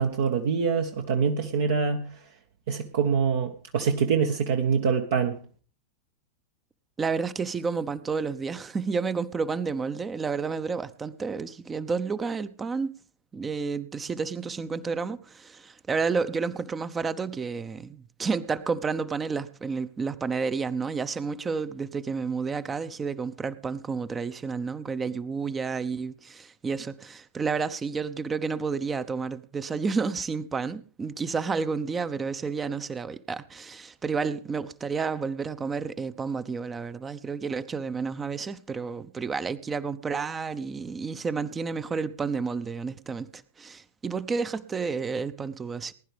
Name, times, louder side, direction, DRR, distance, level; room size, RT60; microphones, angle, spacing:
voice 1, 0.0-2.1 2.7-5.4, right 6 dB, 55° right, 1.2 m, -25 dB
voice 2, 7.0-12.9 13.3-45.9, right 5 dB, 15° right, 0.8 m, -30 dB
20.5 x 11.0 x 3.4 m
figure-of-eight pair, 90°, 0 cm